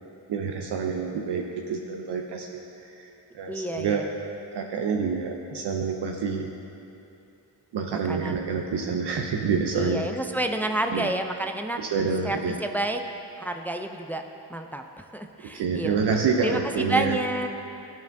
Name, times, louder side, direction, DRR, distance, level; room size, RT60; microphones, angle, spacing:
voice 1, 0.3-2.6 3.0-3.1 3.3-4.1 4.5-6.5 7.7-10.1 10.9-11.1 11.8-12.6 15.5-17.2, right 5 dB, 70° right, 2 dB, 0.6 m, -27 dB
voice 2, 3.5-4.1 7.9-8.5 9.7-11.8 12.2-13.0 13.4-14.2 14.5-16.0 16.4-17.5, right 1 dB, 5° left, 5 dB, 0.3 m, -30 dB
12.5 x 4.6 x 2.6 m, 2.8 s
cardioid pair, 50°, 43 cm